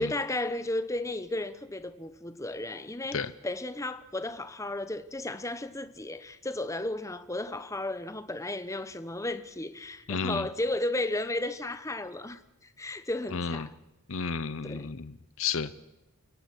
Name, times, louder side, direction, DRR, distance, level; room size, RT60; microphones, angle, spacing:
voice 1, 0.0-13.7 14.6-14.9, left 1 dB, 15° left, 1.1 m, -34 dB
voice 2, 10.1-10.5 13.3-13.7 14.1-15.7, left 5 dB, 65° left, 0.8 m, -32 dB
30.0 x 17.0 x 6.3 m
head